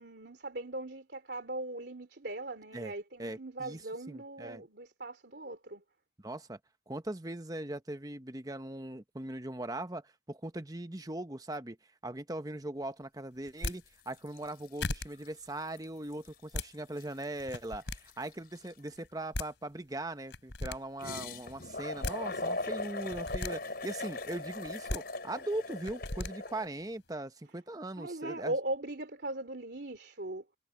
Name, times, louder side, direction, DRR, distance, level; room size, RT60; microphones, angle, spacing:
voice 1, 0.0-5.8 28.0-30.4, right 2 dB, 65° right, 3.2 m, -39 dB
voice 2, 3.2-3.8 4.1-4.6 6.2-6.6 6.9-11.8 12.0-28.5, right 1 dB, 20° right, 1.0 m, -40 dB
sound 1, 13.5-13.8 14.5-14.6 14.8-15.1 16.3-16.7 17.4-18.0 19.0-19.1 19.3-19.5 20.3-20.8 21.8-22.2 23.0-23.5 24.7-25.0 25.8-26.3, left 2 dB, 75° left, 3.5 m, -36 dB
sound 2, 13.6-13.9 14.1-15.4 15.8-15.9 16.1-19.0 21.0-26.7, left 2 dB, 55° left, 5.3 m, -39 dB
head